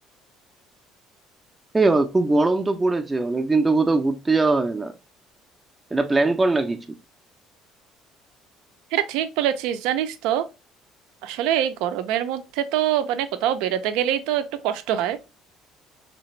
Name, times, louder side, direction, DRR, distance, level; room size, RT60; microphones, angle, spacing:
voice 1, 1.7-4.9 5.9-6.9, right 3 dB, 15° right, 0.4 m, -21 dB
voice 2, 8.9-10.4 11.2-15.2, right 11 dB, 90° right, 0.4 m, -24 dB
3.3 x 2.9 x 3.0 m
cardioid pair, 125°, 0 cm